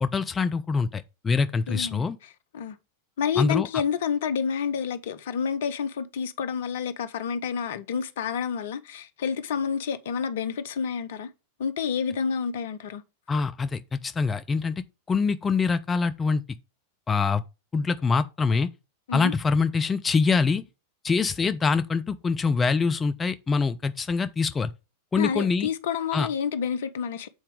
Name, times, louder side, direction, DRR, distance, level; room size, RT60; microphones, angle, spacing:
voice 1, 0.0-2.2 3.4-3.7 13.3-16.4 17.1-17.4 17.7-18.7 19.1-20.6 21.0-24.7 25.1-25.7 26.1-26.3, left 4 dB, 15° left, 0.5 m, -24 dB
voice 2, 1.7-2.1 2.5-2.8 3.2-11.3 11.6-13.0 19.1-19.3 25.2-27.3, left 7 dB, 55° left, 0.8 m, -29 dB
7.9 x 4.3 x 5.1 m
figure-of-eight pair, 90°, 0 cm